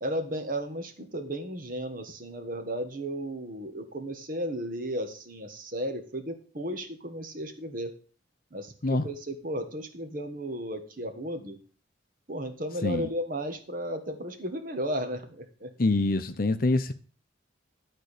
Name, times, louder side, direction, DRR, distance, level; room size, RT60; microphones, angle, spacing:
voice 1, 0.0-7.9 8.5-11.6 12.3-15.7, equal, 45° right, 1.4 m, -34 dB
voice 2, 15.8-16.9, left 2 dB, 45° left, 0.7 m, -25 dB
12.0 x 4.5 x 6.7 m
head